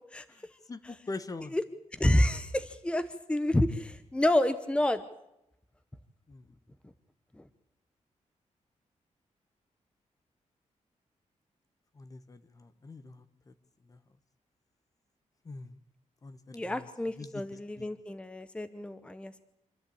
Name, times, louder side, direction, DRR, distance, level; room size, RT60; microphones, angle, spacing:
voice 1, 0.4-1.5 6.3-6.5 11.9-13.5 13.9-14.0 15.4-15.7 16.2-16.9 17.2-17.5 17.8-17.9, left 3 dB, 30° left, 13 dB, 1.1 m, -43 dB
voice 2, 1.9-5.0 7.4-7.5 16.5-19.4, left 1 dB, 10° left, 11 dB, 0.9 m, -29 dB
26.5 x 13.5 x 8.6 m, 0.85 s
wide cardioid pair, 160°, 13 cm